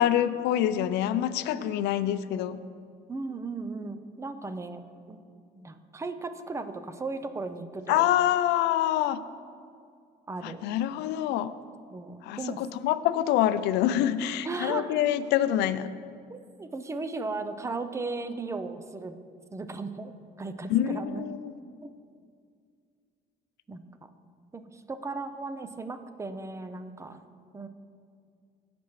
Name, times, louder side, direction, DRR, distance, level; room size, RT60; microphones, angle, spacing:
voice 1, 0.0-2.6 7.9-9.2 10.4-11.5 12.2-15.9 20.7-21.5, left 11 dB, 85° left, 14 dB, 0.4 m, -26 dB
voice 2, 3.1-5.2 5.5-8.1 10.3-10.6 11.9-12.6 14.4-15.0 16.3-19.2 19.5-21.2 21.8-21.9 23.7-24.1 24.5-27.2 27.5-27.7, right 3 dB, 15° right, 9 dB, 0.6 m, -36 dB
16.5 x 6.0 x 3.2 m, 2.2 s
cardioid pair, 110°, 17 cm